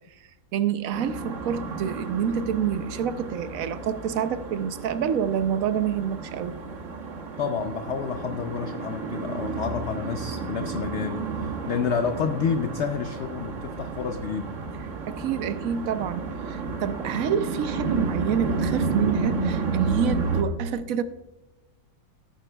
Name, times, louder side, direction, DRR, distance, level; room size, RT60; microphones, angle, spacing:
voice 1, 0.5-6.6 15.1-21.0, right 8 dB, 65° right, 11 dB, 0.9 m, -27 dB
sound 1, 0.9-20.4, right 4 dB, 50° right, 1.3 m, -31 dB
voice 2, 7.4-14.5, left 6 dB, 85° left, 8 dB, 0.6 m, -29 dB
15.5 x 9.2 x 2.3 m, 1.0 s
omnidirectional pair, 1.8 m